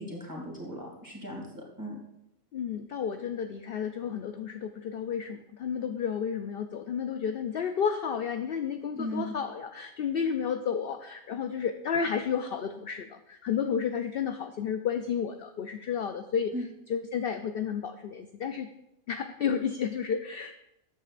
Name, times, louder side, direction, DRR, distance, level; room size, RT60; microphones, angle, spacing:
voice 1, 0.0-2.0 8.9-9.3 16.5-16.7, equal, 15° right, -2 dB, 2.6 m, -37 dB
voice 2, 2.5-16.5 16.9-18.7 19.1-20.6, left 7 dB, 65° left, 7 dB, 0.6 m, -31 dB
13.5 x 8.5 x 2.5 m, 0.86 s
omnidirectional pair, 1.5 m